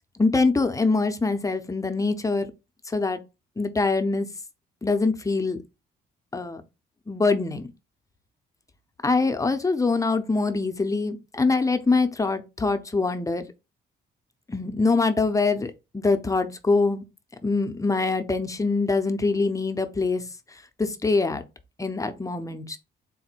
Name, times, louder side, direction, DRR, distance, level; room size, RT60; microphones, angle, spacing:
voice 1, 0.2-2.5 2.9-3.2 3.6-4.3 4.8-5.6 6.3-6.6 7.1-7.7 9.0-13.4 14.5-17.0 17.4-20.2 20.8-21.4 21.8-22.8, left 3 dB, 15° left, 0.6 m, -24 dB
4.0 x 2.1 x 4.3 m
cardioid pair, 90°, 20 cm